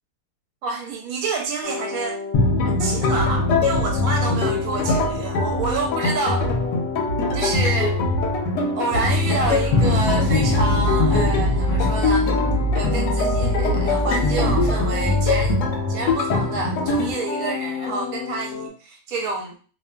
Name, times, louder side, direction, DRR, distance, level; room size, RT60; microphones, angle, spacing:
voice 1, 0.6-2.2 2.6-6.5 7.3-8.0 8.8-12.3 12.7-15.6 15.9-19.5, right 4 dB, 70° right, 1 dB, 1.1 m, -28 dB
sound 1, 1.6-18.7, left 5 dB, 65° left, 1.1 m, -31 dB
sound 2, 2.3-17.1, left 2 dB, 85° left, 1.2 m, -22 dB
sound 3, 9.2-15.5, equal, 15° left, 0.8 m, -25 dB
2.7 x 2.4 x 2.2 m, 0.37 s
omnidirectional pair, 1.7 m